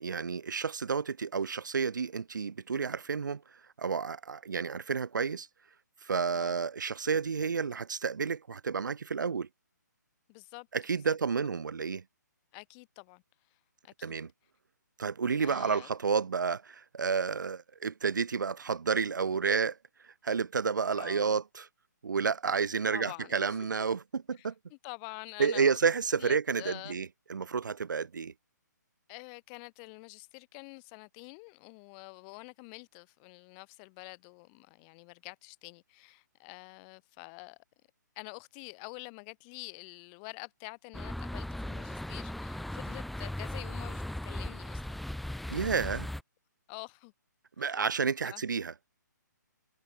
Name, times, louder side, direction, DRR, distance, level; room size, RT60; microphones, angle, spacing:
voice 1, 0.0-3.4 3.8-5.5 6.0-9.5 10.7-12.0 14.0-14.3 15.0-19.8 20.0-21.7 22.0-24.5 25.4-28.3 45.5-46.1 47.6-48.7, right 5 dB, 75° right, 1.1 m, -30 dB
voice 2, 10.3-10.7 12.5-13.2 13.8-14.2 15.4-15.9 21.0-21.4 22.9-24.0 24.4-25.8 26.2-27.0 29.1-37.6 38.2-45.5 46.7-47.1 47.6-47.8 48.2-48.4, left 37 dB, 25° left, 3.7 m, -47 dB
sound 1, 40.9-46.2, left 1 dB, ahead, 0.3 m, -38 dB
hypercardioid pair, 145°, 10 cm